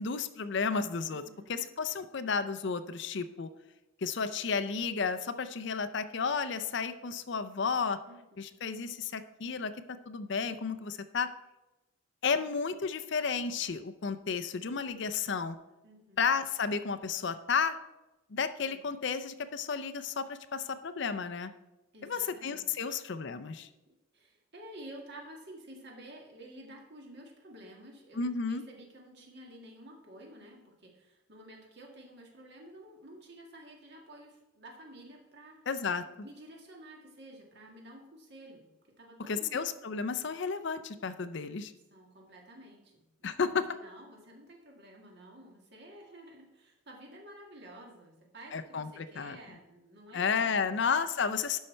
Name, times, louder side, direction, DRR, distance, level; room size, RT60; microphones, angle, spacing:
voice 1, 0.0-1.2 1.5-3.5 4.0-8.0 8.4-9.7 10.1-11.3 12.2-15.6 16.2-17.8 18.3-21.5 22.0-23.7 28.2-28.6 35.7-36.0 39.3-41.7 43.2-43.7 48.5-49.4 50.1-51.6, left 5 dB, 55° left, 12 dB, 0.5 m, -32 dB
voice 2, 1.1-1.6 8.1-8.2 8.5-8.6 15.8-16.3 18.6-18.8 21.9-22.9 23.9-35.6 36.0-38.7 39.0-39.7 41.9-50.7, right 1 dB, 50° right, 0 dB, 1.8 m, -51 dB
11.5 x 5.6 x 4.4 m, 1.0 s
head